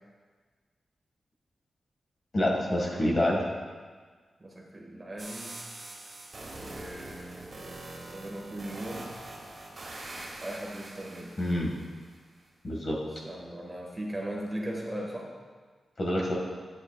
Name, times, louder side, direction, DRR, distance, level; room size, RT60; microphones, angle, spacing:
voice 1, 2.3-3.4 11.4-11.7 12.6-13.0 16.0-16.4, left 1 dB, 45° left, -2 dB, 1.7 m, -27 dB
voice 2, 4.4-5.5 6.6-9.1 10.4-11.4 13.2-15.3, right 1 dB, 20° right, -2 dB, 1.7 m, -38 dB
sound 1, 5.2-12.2, right 2 dB, 40° right, 1.8 m, -44 dB
11.5 x 9.0 x 2.4 m, 1.5 s
wide cardioid pair, 105°, 0 cm